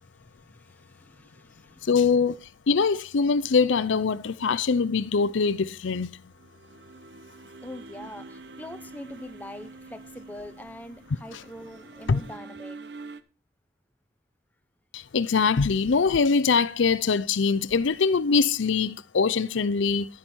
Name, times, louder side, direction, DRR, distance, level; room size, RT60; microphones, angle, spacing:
voice 1, 0.0-1.9 7.6-12.8, left 1 dB, 10° left, 0.9 m, -43 dB
voice 2, 1.9-2.4 2.7-6.1 12.1-12.2 14.9-20.1, left 5 dB, 70° left, 0.5 m, -23 dB
sound 1, 6.2-13.2, right 3 dB, 55° right, 0.8 m, -46 dB
11.5 x 9.8 x 4.4 m
head